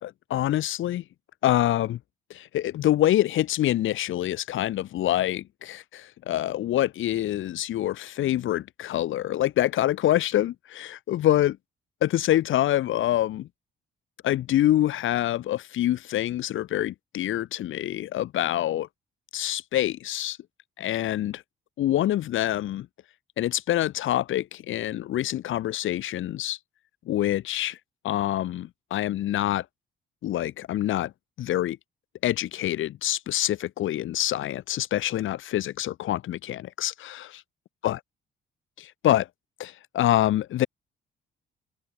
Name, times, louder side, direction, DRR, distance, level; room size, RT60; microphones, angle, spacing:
voice 1, 0.0-1.0 1.4-2.0 2.3-11.6 12.0-13.5 14.2-18.9 19.3-20.4 20.8-21.4 21.8-22.9 23.4-26.6 27.1-27.8 28.0-29.6 30.2-31.1 31.4-31.8 32.2-37.4 37.8-38.0 38.8-39.3 39.6-40.7, left 13 dB, 80° left, 5.7 m, -26 dB
open air
cardioid pair, 90°, 20 cm